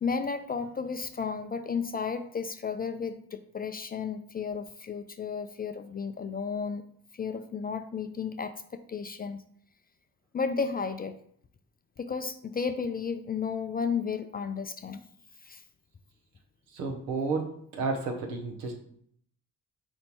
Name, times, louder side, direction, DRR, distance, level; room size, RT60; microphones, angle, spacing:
voice 1, 0.0-6.8 7.2-9.4 10.3-11.2 12.0-15.0 15.4-15.6, left 5 dB, 25° left, 9 dB, 0.3 m, -33 dB
voice 2, 16.7-18.7, right 4 dB, 80° right, 2 dB, 0.9 m, -32 dB
4.2 x 2.6 x 4.5 m, 0.65 s
hypercardioid pair, 40°, 41 cm